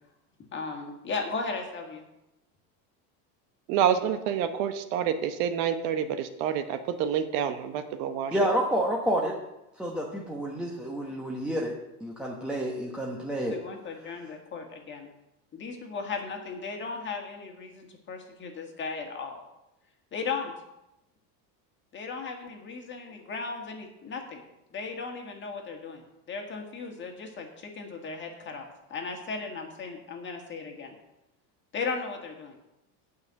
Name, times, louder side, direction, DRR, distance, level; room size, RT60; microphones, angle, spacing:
voice 1, 0.5-2.0 13.5-15.1 15.5-19.4 20.1-20.5 21.9-24.4 24.7-26.0 26.3-30.9 31.7-32.5, left 4 dB, 25° left, 2 dB, 1.8 m, -36 dB
voice 2, 3.7-8.4, right 8 dB, 60° right, 9 dB, 1.0 m, -28 dB
voice 3, 8.3-9.3 9.8-11.7 12.0-13.6, equal, ahead, -2 dB, 1.0 m, -29 dB
9.3 x 5.6 x 8.0 m, 0.92 s
cardioid pair, 150°, 44 cm